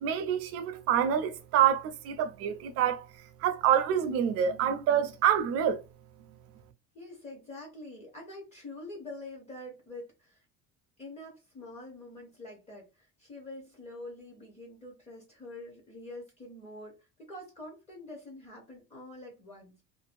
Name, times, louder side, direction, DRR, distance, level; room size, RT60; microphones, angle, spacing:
voice 1, 0.0-3.1 3.4-5.8, right 9 dB, 50° right, 0.5 m, -27 dB
voice 2, 6.9-10.4 11.0-19.8, left 2 dB, 20° left, 0.6 m, -46 dB
2.6 x 2.1 x 2.4 m
cardioid pair, 170°, 30 cm